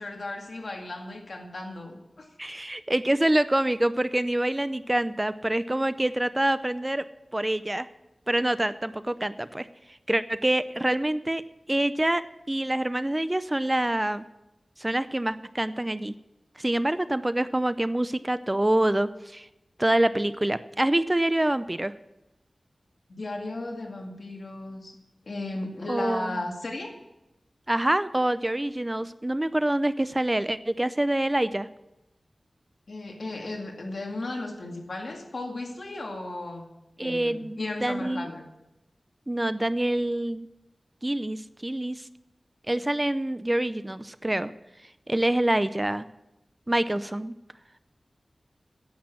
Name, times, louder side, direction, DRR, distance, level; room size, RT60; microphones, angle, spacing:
voice 1, 0.0-2.3 23.1-25.0 25.3-26.9 32.9-36.7 37.0-38.4, left 2 dB, 70° left, 2 dB, 2.2 m, -35 dB
voice 2, 2.4-7.0 7.3-7.9 8.3-9.7 10.1-11.4 11.7-14.2 14.8-16.1 16.6-19.5 19.8-21.9 25.9-26.4 27.7-31.7 37.0-38.3 39.3-40.5 41.0-42.1 42.7-44.5 45.1-46.1 46.7-47.4, right 1 dB, 20° right, 14 dB, 0.5 m, -26 dB
10.5 x 8.3 x 7.5 m, 0.93 s
wide cardioid pair, 65°, 0 cm